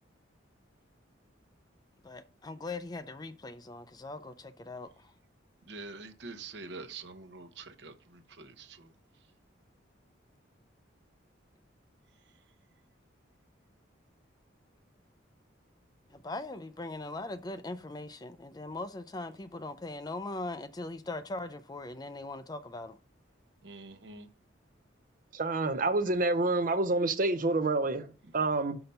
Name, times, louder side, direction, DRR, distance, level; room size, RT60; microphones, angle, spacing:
voice 1, 2.0-4.9 16.1-23.0, left 2 dB, 20° left, 0.4 m, -40 dB
voice 2, 5.7-8.9 23.6-24.3, right 3 dB, 60° right, 0.9 m, -45 dB
voice 3, 25.3-28.8, right 2 dB, 45° right, 0.5 m, -28 dB
5.9 x 5.5 x 5.3 m
head